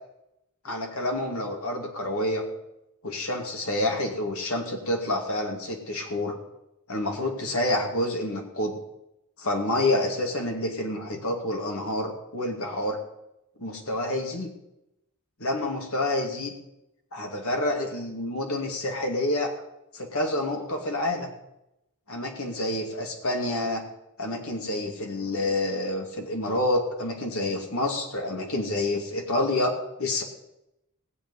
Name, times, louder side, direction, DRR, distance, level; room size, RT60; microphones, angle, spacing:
voice 1, 0.6-2.4 3.0-6.4 6.9-8.7 9.4-13.0 13.6-14.5 15.4-16.5 17.1-19.5 19.9-21.3 22.1-23.8 24.2-30.2, left 1 dB, 75° left, 2 dB, 2.5 m, -28 dB
18.5 x 7.7 x 5.5 m, 0.87 s
head